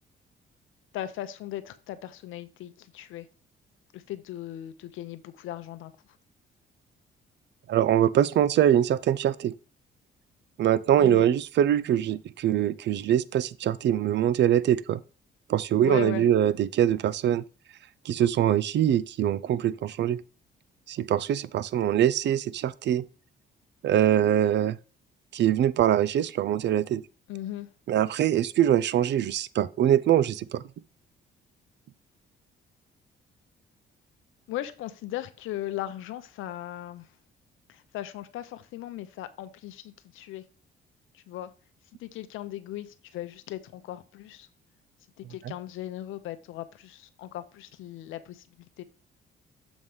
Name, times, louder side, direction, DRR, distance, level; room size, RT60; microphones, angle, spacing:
voice 1, 0.9-3.3 3.9-5.9 11.0-11.3 15.8-16.3 27.3-27.7 34.5-37.1 37.7-40.4 41.1-41.5 42.0-44.5 45.2-48.4 48.8-48.9, left 13 dB, 90° left, 0.8 m, -37 dB
voice 2, 7.7-9.5 10.6-15.0 15.5-17.4 18.1-20.2 20.9-23.0 23.8-24.8 25.3-27.0 27.9-30.6, right 11 dB, 65° right, 0.5 m, -23 dB
7.1 x 3.2 x 5.5 m
cardioid pair, 90°, 20 cm